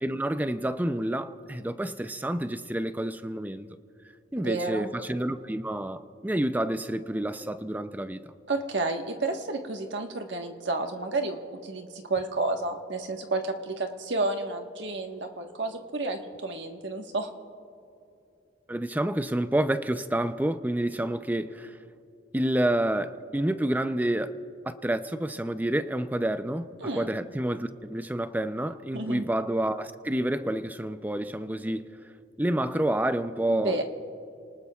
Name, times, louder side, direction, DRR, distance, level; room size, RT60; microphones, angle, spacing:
voice 1, 0.0-3.7 4.3-8.2 18.7-21.8 22.3-24.3 24.7-31.9 32.4-33.8, right 1 dB, 10° right, 0.4 m, -29 dB
voice 2, 4.4-4.9 8.5-17.3 26.8-27.1 28.9-29.3 33.5-33.8, right 2 dB, 75° right, 1.3 m, -31 dB
30.0 x 19.5 x 2.3 m
head